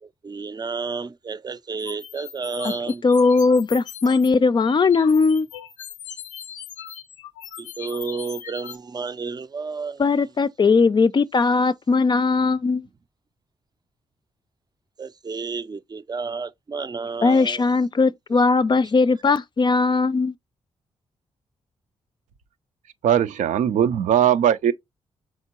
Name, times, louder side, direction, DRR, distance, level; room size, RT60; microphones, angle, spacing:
voice 1, 0.0-3.0 4.1-4.2 7.6-10.1 15.0-17.7, right 4 dB, 30° right, 0.5 m, -31 dB
sound 1, 1.8-4.3 4.7-8.8, left 9 dB, 90° left, 0.5 m, -39 dB
voice 2, 3.0-5.5 10.0-12.9 17.2-20.3, left 4 dB, 35° left, 0.4 m, -19 dB
voice 3, 23.0-24.7, right 10 dB, 80° right, 0.5 m, -19 dB
4.4 x 3.6 x 2.9 m
supercardioid pair, 50°, 13 cm